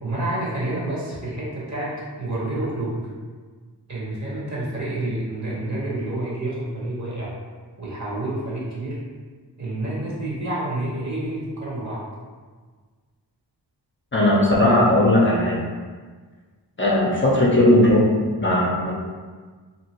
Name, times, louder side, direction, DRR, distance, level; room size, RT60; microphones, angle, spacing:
voice 1, 0.0-3.0 3.9-7.3 7.8-9.0 9.6-12.0, right 1 dB, 40° right, -6 dB, 1.1 m, -28 dB
voice 2, 14.1-15.6 16.8-18.9, left 1 dB, 30° left, -5 dB, 0.5 m, -17 dB
2.7 x 2.5 x 2.9 m, 1.5 s
wide cardioid pair, 75°, 42 cm